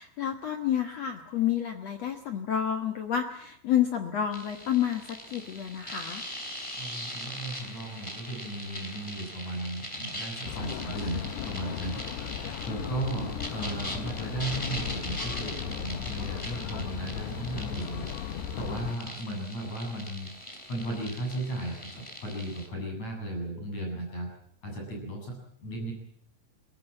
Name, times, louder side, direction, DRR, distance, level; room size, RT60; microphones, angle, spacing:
voice 1, 0.0-6.2, left 9 dB, 60° left, 6 dB, 1.8 m, -29 dB
sound 1, 4.3-22.7, equal, 5° left, 3.6 m, -41 dB
voice 2, 6.8-20.3 20.7-24.3 24.6-25.9, right 1 dB, 40° left, 2 dB, 9.0 m, -36 dB
sound 2, 10.4-19.0, left 9 dB, 85° left, 3.4 m, -36 dB
22.5 x 17.5 x 8.9 m, 0.69 s
omnidirectional pair, 4.7 m